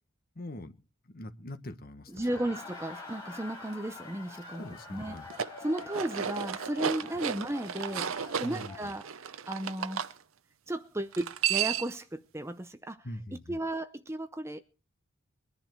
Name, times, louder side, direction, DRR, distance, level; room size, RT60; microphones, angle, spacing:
voice 1, 0.3-0.8 1.0-2.3 4.6-5.3 8.4-8.9 13.0-13.6, left 1 dB, 45° left, 1.3 m, -43 dB
Laughter, 2.1-8.9, left 3 dB, 20° left, 5.4 m, -46 dB
voice 2, 2.1-5.2 5.6-10.1 10.7-13.1 13.3-14.6, right 1 dB, 10° right, 0.6 m, -35 dB
sound 1, 5.2-10.1 11.1-12.0, right 8 dB, 75° right, 0.7 m, -33 dB
22.0 x 10.5 x 4.7 m
head